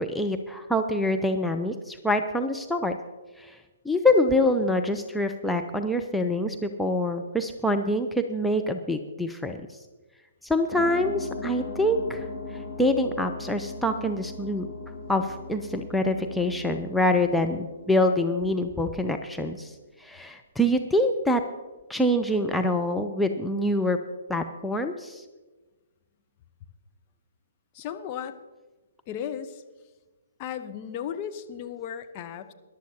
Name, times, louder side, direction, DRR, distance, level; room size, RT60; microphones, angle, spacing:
voice 1, 0.0-3.0 3.4-3.6 3.9-9.6 10.4-12.3 12.5-14.7 15.1-19.7 20.0-21.4 21.9-24.0 24.3-25.2, left 1 dB, ahead, 4 dB, 0.6 m, -25 dB
sound 1, 10.7-18.8, left 3 dB, 15° right, 3.1 m, -39 dB
voice 2, 27.7-28.4 29.1-29.6 30.4-32.5, left 9 dB, 30° left, 7 dB, 0.9 m, -35 dB
21.0 x 11.5 x 2.8 m, 1.2 s
figure-of-eight pair, 125°, 0 cm